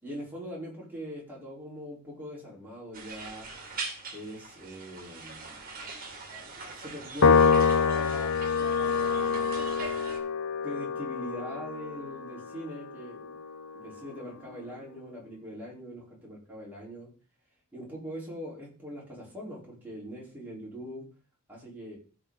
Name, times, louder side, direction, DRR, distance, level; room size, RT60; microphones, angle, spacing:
voice 1, 0.0-3.5 4.1-5.6 6.6-9.8 10.6-13.4 13.7-17.1 17.7-21.1 21.5-22.0, equal, 10° right, -5 dB, 4.5 m, -42 dB
sound 1, 2.9-10.2, right 3 dB, 45° right, 2.0 m, -42 dB
Piano, 7.2-13.8, left 5 dB, 85° left, 0.7 m, -26 dB
15.5 x 5.4 x 4.1 m, 0.37 s
head